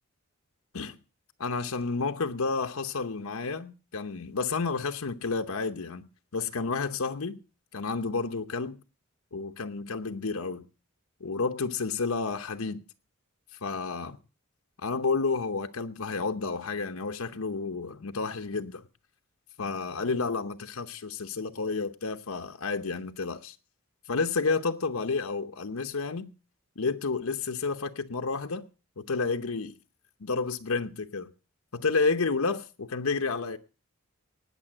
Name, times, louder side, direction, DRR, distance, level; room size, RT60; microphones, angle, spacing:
voice 1, 1.4-6.1 6.3-7.4 7.7-8.8 9.3-10.7 11.2-12.8 13.5-14.2 14.8-18.8 19.6-23.6 24.1-26.3 26.8-28.6 29.0-29.7 30.2-31.3 31.7-33.6, left 4 dB, 85° left, 0.8 m, -30 dB
18.5 x 7.0 x 7.6 m
head